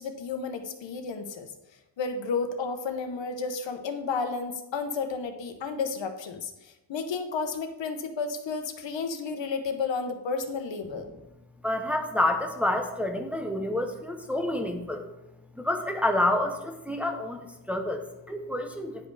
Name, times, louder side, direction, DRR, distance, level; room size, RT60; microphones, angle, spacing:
voice 1, 0.0-1.5 2.0-11.1, left 4 dB, 85° left, 7 dB, 1.0 m, -32 dB
voice 2, 11.6-15.1 15.5-19.1, left 1 dB, 5° right, 3 dB, 0.6 m, -28 dB
9.9 x 5.3 x 4.7 m, 0.96 s
wide cardioid pair, 175°, 43 cm